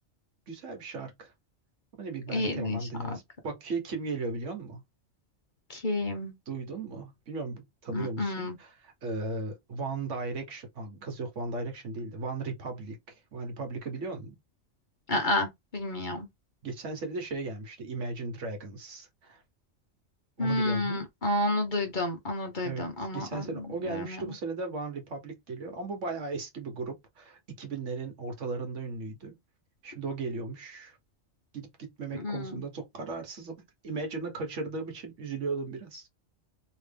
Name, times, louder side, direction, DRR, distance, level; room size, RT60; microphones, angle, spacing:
voice 1, 0.5-1.3 2.0-4.8 6.5-14.3 16.6-19.4 20.4-21.0 22.6-29.3 29.8-31.0 31.5-36.1, right 3 dB, 70° right, 1.4 m, -36 dB
voice 2, 2.3-2.8 3.1-3.2 5.7-6.3 7.9-8.5 15.1-16.3 20.4-23.4 23.9-24.2 32.1-32.6, left 1 dB, 45° left, 1.0 m, -30 dB
3.1 x 2.9 x 3.3 m
omnidirectional pair, 1.3 m